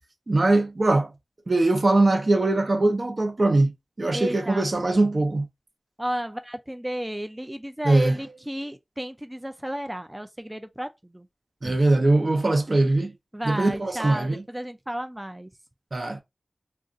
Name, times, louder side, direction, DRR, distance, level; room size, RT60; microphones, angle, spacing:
voice 1, 0.3-1.1 1.5-3.7 4.0-5.5 7.8-8.1 11.6-13.1 13.4-14.4 15.9-16.2, right 2 dB, 55° right, 0.8 m, -21 dB
voice 2, 4.1-4.7 6.0-11.3 11.6-11.8 13.3-15.5, equal, 15° right, 0.3 m, -33 dB
2.5 x 2.4 x 3.7 m
wide cardioid pair, 70°, 0 cm